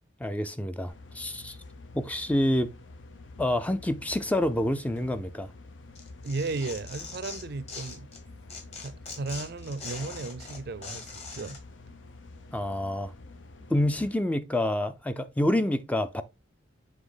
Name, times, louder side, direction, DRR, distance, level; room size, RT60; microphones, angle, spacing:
voice 1, 0.2-1.6 1.9-2.7 3.4-5.5 12.5-13.1 13.7-16.2, left 1 dB, 10° left, 0.4 m, -27 dB
sound 1, 0.9-14.1, left 2 dB, 85° left, 0.7 m, -48 dB
Tearing, 5.9-8.2 8.5-11.6, left 4 dB, 35° left, 1.5 m, -42 dB
voice 2, 6.2-8.1 8.8-11.6, right 3 dB, 55° right, 0.5 m, -35 dB
7.2 x 3.4 x 3.8 m
head